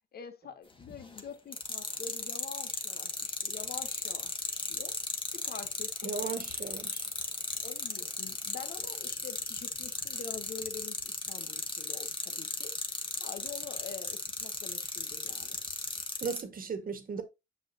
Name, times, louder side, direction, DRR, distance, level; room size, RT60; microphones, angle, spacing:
voice 1, 0.1-4.9 5.3-6.1 7.6-12.7 13.2-15.6, left 6 dB, 50° left, 1.2 m, -46 dB
sound 1, 0.8-1.2 1.5-16.4, left 3 dB, 25° left, 1.6 m, -35 dB
voice 2, 6.0-7.1 16.2-17.2, right 5 dB, 45° right, 1.7 m, -36 dB
6.7 x 6.2 x 2.8 m
cardioid pair, 90°, 20 cm